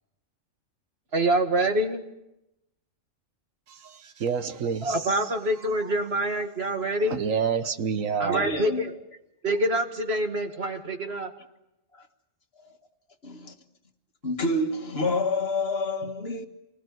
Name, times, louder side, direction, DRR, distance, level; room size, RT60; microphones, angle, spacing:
voice 1, 1.1-2.0 4.8-7.2 8.2-8.9 9.4-11.3, right 1 dB, 55° right, 2.3 m, -26 dB
voice 2, 3.7-5.3 5.8-5.9 6.7-8.5, right 6 dB, 90° right, 1.6 m, -29 dB
voice 3, 8.3-9.0 11.9-12.1 12.5-12.8 13.2-13.6 14.2-16.5, left 2 dB, 50° left, 1.9 m, -28 dB
27.5 x 20.5 x 9.4 m
omnidirectional pair, 1.3 m